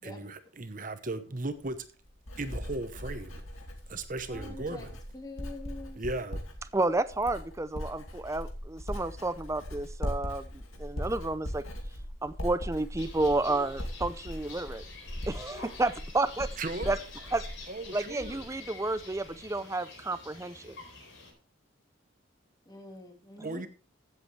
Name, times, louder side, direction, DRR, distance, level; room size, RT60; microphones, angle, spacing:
voice 1, 0.0-1.8 2.4-3.4 3.9-4.9 6.0-6.4 16.6-17.0 17.7-18.4 23.4-23.7, right 2 dB, 40° right, 10 dB, 1.0 m, -36 dB
Writing, 1.5-18.6 18.9-19.3, equal, 85° left, 2.5 m, -40 dB
voice 2, 4.3-4.9 5.1-6.1 22.7-23.6, left 2 dB, 20° left, 2 dB, 2.0 m, -45 dB
voice 3, 6.7-11.6 12.2-14.8 15.3-16.5 16.9-17.0 17.3-17.4 17.9-20.8, right 2 dB, 15° right, 14 dB, 0.5 m, -31 dB
sound 1, 13.0-21.3, left 3 dB, 60° left, 4.3 m, -47 dB
15.5 x 7.9 x 3.3 m, 0.36 s
head